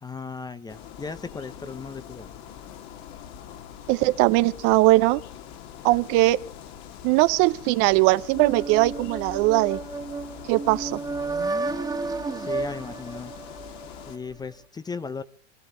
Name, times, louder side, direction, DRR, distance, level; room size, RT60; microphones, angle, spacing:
voice 1, 0.0-2.3 12.4-13.3 14.1-15.2, left 5 dB, 10° left, 0.7 m, -36 dB
sound 1, 0.7-14.2, left 9 dB, 45° left, 2.0 m, -43 dB
voice 2, 3.9-5.2 5.8-6.4 7.0-9.8 10.5-11.0, right 20 dB, 45° right, 0.8 m, -20 dB
sound 2, 8.3-14.1, right 3 dB, 10° right, 1.6 m, -32 dB
25.5 x 14.0 x 3.9 m
hypercardioid pair, 120°, 37 cm